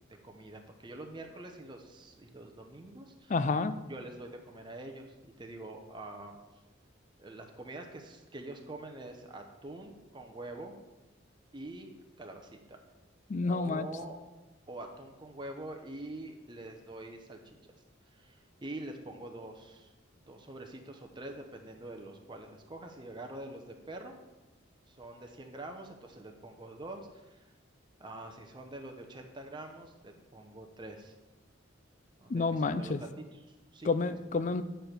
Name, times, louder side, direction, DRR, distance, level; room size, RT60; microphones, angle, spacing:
voice 1, 0.2-3.3 3.9-6.4 7.2-10.8 11.5-11.9 12.2-12.8 13.5-14.2 14.7-17.6 18.1-19.9 20.3-24.1 24.9-27.5 28.0-31.1 32.2-33.9, right 2 dB, 25° right, 3 dB, 0.7 m, -45 dB
voice 2, 3.3-3.8 13.3-13.9 32.3-33.0 33.8-34.6, left 3 dB, 40° left, 12 dB, 0.4 m, -29 dB
9.0 x 4.5 x 6.6 m, 1.1 s
head